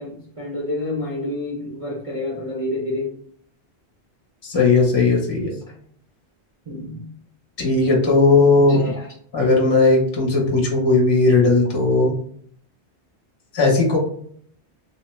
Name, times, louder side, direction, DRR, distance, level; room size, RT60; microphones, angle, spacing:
voice 1, 0.0-3.2 6.7-7.0 8.7-8.9, left 2 dB, 35° right, -4 dB, 0.6 m, -28 dB
voice 2, 4.4-5.6 7.6-8.8 9.3-12.1 13.5-14.0, left 3 dB, 30° left, -1 dB, 0.6 m, -17 dB
2.9 x 2.1 x 3.1 m, 0.62 s
omnidirectional pair, 1.1 m